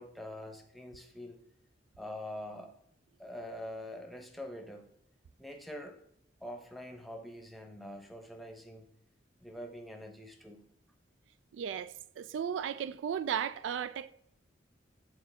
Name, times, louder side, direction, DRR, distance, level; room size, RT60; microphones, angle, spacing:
voice 1, 0.0-1.4 2.0-2.7 3.2-4.9 5.4-6.0 6.4-8.8 9.4-10.6, left 1 dB, ahead, 0.8 m, -44 dB
voice 2, 11.5-14.1, right 8 dB, 80° right, 0.3 m, -35 dB
8.8 x 3.8 x 3.4 m
head